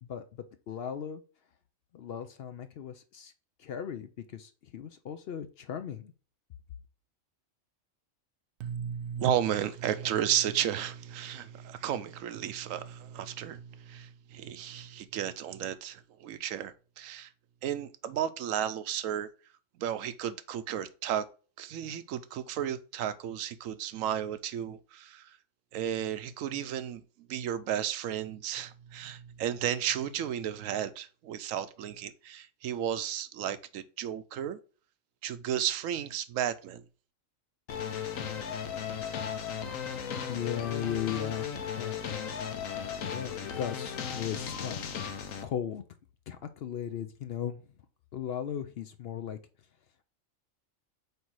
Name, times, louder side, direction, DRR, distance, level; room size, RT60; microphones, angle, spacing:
voice 1, 0.0-1.2 1.9-3.3 3.6-6.1 40.3-41.5 41.8-42.4 43.1-44.9 45.4-45.8 46.3-47.6 48.1-49.4, left 9 dB, 60° left, 0.7 m, -37 dB
voice 2, 8.6-17.3 17.6-19.3 19.8-21.2 21.6-25.2 25.7-27.0 27.3-34.6 35.2-36.8, right 10 dB, 80° right, 1.0 m, -33 dB
sound 1, 37.7-45.4, left 7 dB, 90° left, 1.1 m, -36 dB
7.9 x 2.7 x 4.6 m
omnidirectional pair, 1.4 m